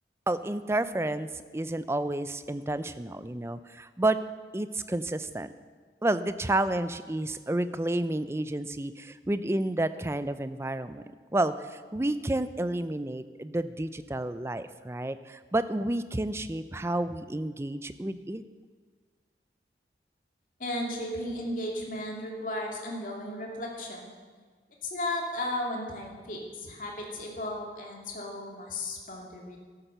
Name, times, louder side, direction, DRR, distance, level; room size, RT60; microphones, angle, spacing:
voice 1, 0.3-4.2 4.5-5.5 6.0-11.0 11.3-18.4, right 1 dB, 15° right, 12 dB, 0.4 m, -30 dB
voice 2, 20.6-24.1 24.8-29.6, left 1 dB, 50° left, -1 dB, 2.4 m, -35 dB
13.0 x 8.9 x 6.8 m, 1.5 s
head